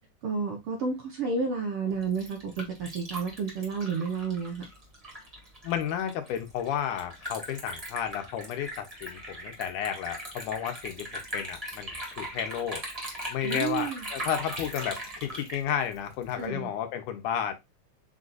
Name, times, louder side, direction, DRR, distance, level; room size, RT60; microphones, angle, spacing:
voice 1, 0.2-4.7 13.4-14.0 16.4-16.7, right 5 dB, 65° right, 1.4 m, -31 dB
Liquid, 1.9-16.4, right 1 dB, 25° right, 0.8 m, -39 dB
voice 2, 5.6-11.9 12.2-12.8 13.3-17.5, left 9 dB, 90° left, 2.3 m, -32 dB
5.6 x 2.5 x 3.8 m
omnidirectional pair, 3.5 m